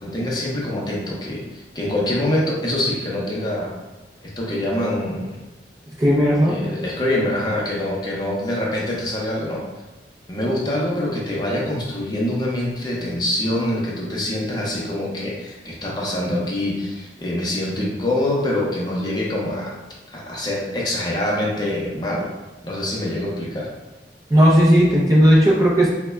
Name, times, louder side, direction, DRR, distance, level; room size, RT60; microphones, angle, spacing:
voice 1, 0.0-3.7 4.2-5.3 6.4-9.6 10.3-19.7 20.1-22.3 22.6-23.7, left 1 dB, 25° left, -4 dB, 0.6 m, -25 dB
voice 2, 6.0-6.6 24.3-25.9, equal, 20° right, -4 dB, 0.4 m, -15 dB
3.3 x 2.1 x 3.3 m, 1.1 s
head